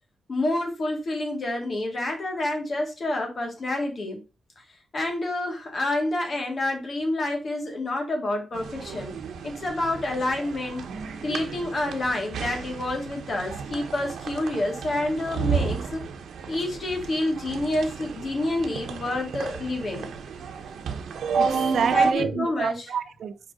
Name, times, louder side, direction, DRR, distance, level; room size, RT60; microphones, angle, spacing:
voice 1, 0.3-4.2 4.9-9.2 9.4-10.8 11.2-16.0 16.5-20.1 21.9-22.9, left 2 dB, 40° left, 2.4 m, -28 dB
sound 1, 8.5-22.1, right 5 dB, 85° right, 1.1 m, -31 dB
voice 2, 21.4-23.5, right 7 dB, 70° right, 0.6 m, -29 dB
5.4 x 4.8 x 5.5 m
wide cardioid pair, 145°, 0 cm